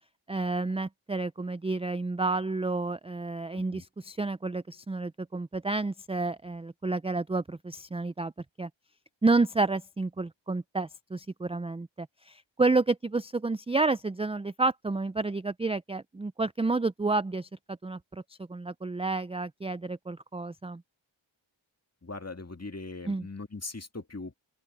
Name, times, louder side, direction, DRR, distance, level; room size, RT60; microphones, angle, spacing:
voice 1, 0.3-8.3 8.6-8.7 9.2-20.8 23.1-23.3, right 3 dB, 15° right, 0.4 m, -30 dB
voice 2, 22.0-24.3, left 3 dB, 30° left, 2.1 m, -40 dB
open air
wide cardioid pair, 50°, 47 cm